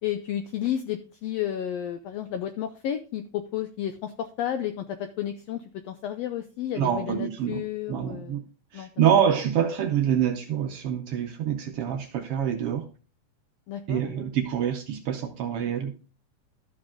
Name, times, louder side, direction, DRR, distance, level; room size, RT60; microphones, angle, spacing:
voice 1, 0.0-8.4 8.7-8.9 13.7-14.1, left 10 dB, 85° left, 9 dB, 1.4 m, -32 dB
voice 2, 6.8-7.6 7.9-8.4 8.7-12.8 13.9-15.9, right 9 dB, 80° right, 5 dB, 1.3 m, -26 dB
13.5 x 4.9 x 3.7 m, 0.34 s
omnidirectional pair, 3.6 m